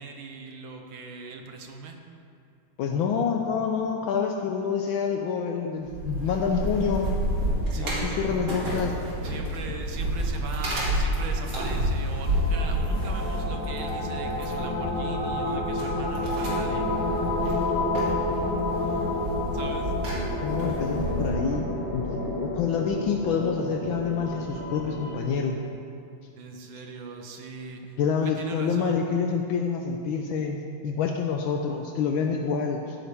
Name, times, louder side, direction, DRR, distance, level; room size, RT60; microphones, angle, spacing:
voice 1, 0.0-2.0 7.7-8.3 9.2-16.9 19.5-19.9 26.4-29.0, right 4 dB, 70° right, 3 dB, 1.7 m, -40 dB
voice 2, 2.8-7.1 7.8-8.9 20.4-21.6 21.9-25.6 28.0-33.0, left 6 dB, 75° left, 2 dB, 1.4 m, -27 dB
sound 1, 5.8-21.3, equal, 55° right, 2.8 m, -30 dB
sound 2, 12.1-25.2, left 2 dB, 60° left, 2.2 m, -30 dB
15.5 x 8.9 x 3.5 m, 2.5 s
omnidirectional pair, 2.3 m